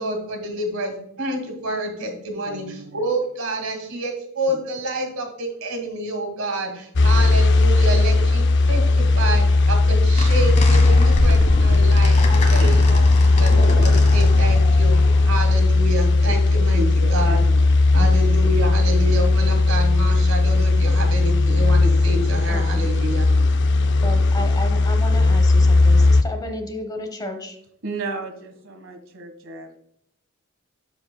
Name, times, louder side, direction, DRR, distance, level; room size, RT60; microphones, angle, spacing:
voice 1, 0.0-15.0 15.2-16.8 17.1-17.4 17.9-23.3, right 1 dB, 90° right, 4 dB, 2.1 m, -28 dB
voice 2, 2.4-3.1 11.3-11.4 12.4-12.7 16.2-18.2 27.8-29.8, right 3 dB, 65° right, 5 dB, 1.4 m, -34 dB
sound 1, 7.0-26.2, left 3 dB, 60° left, 0.5 m, -16 dB
sound 2, 10.2-15.5, left 1 dB, 35° left, 1.5 m, -26 dB
voice 3, 18.4-18.9 21.0-21.4 22.5-22.9 24.0-27.6, left 1 dB, 20° left, 6 dB, 1.0 m, -33 dB
13.0 x 4.9 x 2.3 m, 0.73 s
head